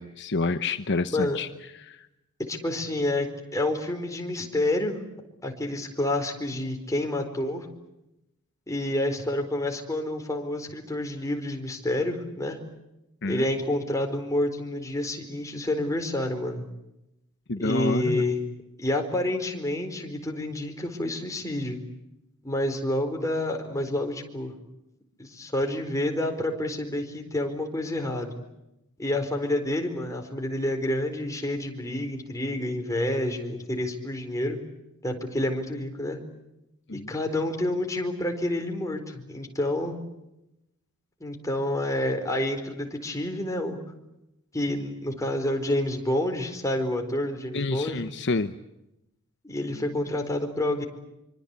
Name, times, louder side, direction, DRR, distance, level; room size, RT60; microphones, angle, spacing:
voice 1, 0.0-1.5 1.7-2.1 13.2-13.5 17.5-18.2 36.9-37.1 47.5-48.5, left 3 dB, 55° left, 10 dB, 1.0 m, -28 dB
voice 2, 2.5-3.3 3.5-5.0 5.4-7.7 8.7-12.6 13.3-16.7 17.6-18.4 18.8-21.8 22.4-24.5 25.2-28.3 29.0-34.6 35.0-36.2 37.1-40.0 41.2-43.8 44.5-48.0 49.4-50.8, left 1 dB, 15° left, 3 dB, 4.4 m, -28 dB
26.0 x 25.0 x 8.4 m, 0.89 s
head